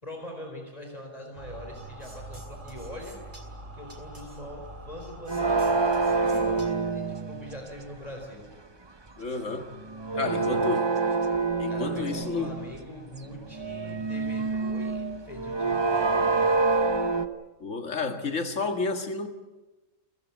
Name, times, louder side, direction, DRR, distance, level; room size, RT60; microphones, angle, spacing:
voice 1, 0.0-3.2 3.7-8.5 10.1-10.6 11.7-16.6, left 1 dB, 30° left, 4.4 m, -43 dB
sound 1, 1.3-6.7, right 1 dB, 40° right, 3.1 m, -43 dB
sound 2, 5.3-7.7 9.6-12.8 13.4-17.3, right 3 dB, 25° right, 0.9 m, -27 dB
voice 2, 9.2-9.8 10.2-10.8 11.1-11.2 11.6-12.5 17.6-19.3, left 4 dB, 80° left, 2.2 m, -31 dB
29.0 x 15.5 x 8.3 m
omnidirectional pair, 1.3 m